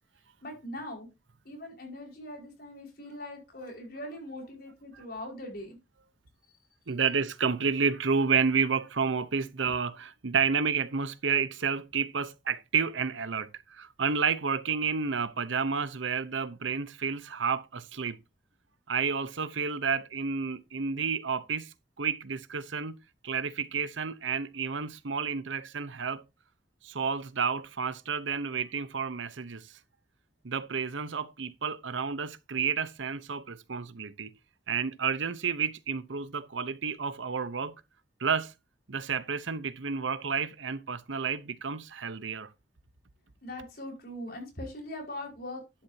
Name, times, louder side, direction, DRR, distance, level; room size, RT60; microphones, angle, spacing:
voice 1, 0.4-1.1 1.4-5.8 9.6-9.7 43.4-45.6, left 1 dB, 55° left, 5.1 m, -41 dB
voice 2, 6.9-18.2 18.9-23.0 23.2-26.2 26.8-29.7 30.4-34.3 34.7-37.7 38.2-38.5 38.9-42.5, right 5 dB, 90° right, 0.8 m, -30 dB
11.5 x 10.0 x 2.8 m
head